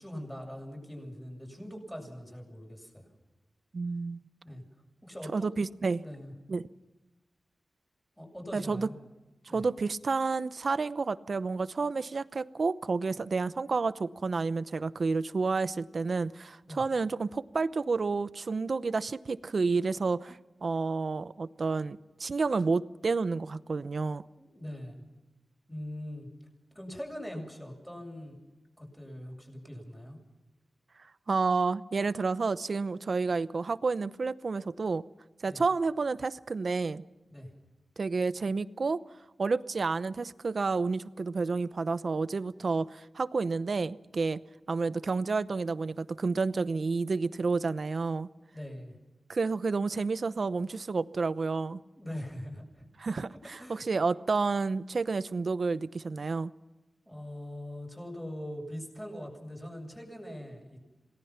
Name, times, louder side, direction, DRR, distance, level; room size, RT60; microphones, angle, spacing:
voice 1, 0.0-3.1 4.4-4.6 5.0-5.5 6.0-6.3 8.2-8.9 9.5-9.6 16.7-16.8 24.4-25.0 25.7-26.3 26.7-28.4 28.8-30.2 35.5-35.6 37.3-37.5 48.5-49.0 52.0-52.9 53.6-53.8 57.1-60.8, equal, 5° left, 7.5 m, -42 dB
voice 2, 3.7-4.2 5.3-6.0 6.5-6.6 8.5-8.9 9.5-24.2 31.3-35.0 35.4-37.0 38.0-39.0 39.4-44.4 44.7-48.3 49.3-51.8 53.0-56.5, right 4 dB, 65° right, 0.8 m, -30 dB
27.5 x 18.5 x 5.9 m
wide cardioid pair, 75°, 0 cm